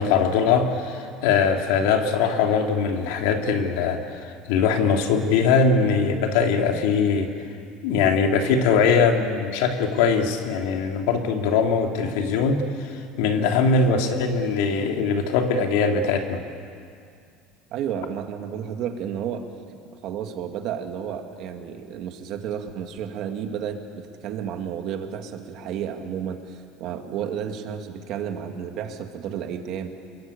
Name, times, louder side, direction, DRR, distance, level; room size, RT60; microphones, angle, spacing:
voice 1, 0.0-7.3 7.8-16.4, left 5 dB, 75° left, 3 dB, 3.0 m, -21 dB
voice 2, 17.7-19.5 20.0-29.9, right 8 dB, 45° right, 5 dB, 2.2 m, -32 dB
28.5 x 22.0 x 8.7 m, 2.3 s
cardioid pair, 175°, 0 cm